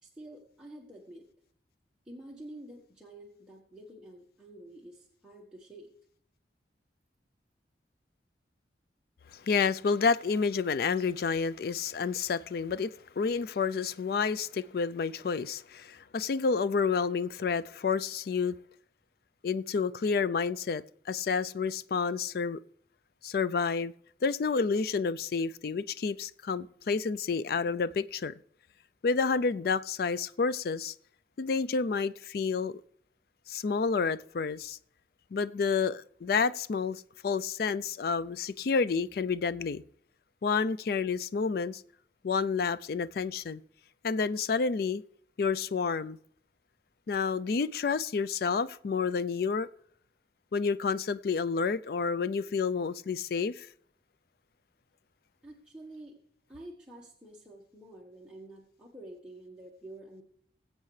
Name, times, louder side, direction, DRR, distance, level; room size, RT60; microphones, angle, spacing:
voice 1, 0.0-1.3 2.0-5.9 55.4-56.1 56.5-60.2, right 1 dB, 5° right, 1.4 m, -48 dB
voice 2, 9.3-18.6 19.4-22.6 23.2-23.9 24.2-28.3 29.0-30.9 31.4-32.8 33.5-34.8 35.3-39.8 40.4-41.8 42.2-43.6 44.0-45.0 45.4-46.2 47.1-49.7 50.5-53.7, left 5 dB, 55° left, 0.4 m, -29 dB
21.0 x 8.1 x 3.2 m
head